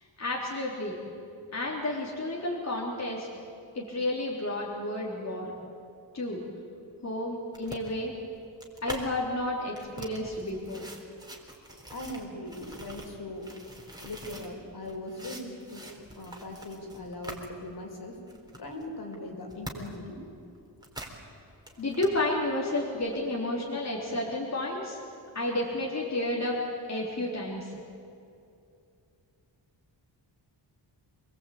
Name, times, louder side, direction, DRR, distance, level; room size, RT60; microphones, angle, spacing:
voice 1, 0.2-1.0 1.5-3.3 3.7-5.5 6.1-6.4 7.0-8.1 8.8-10.9 21.8-25.0 25.3-26.6 26.9-27.7, left 1 dB, 35° left, -4 dB, 3.8 m, -31 dB
sound 1, 7.5-9.1 9.6-14.5 14.9-17.5 17.9-18.0 18.3-20.1 20.3-21.2 21.5-22.2 23.0-23.1, right 1 dB, 10° right, 3.9 m, -44 dB
voice 2, 11.9-18.2 18.6-20.2 21.7-21.9, left 1 dB, 55° left, 2 dB, 5.1 m, -40 dB
26.5 x 21.5 x 8.7 m, 2.5 s
wide cardioid pair, 125°, 45 cm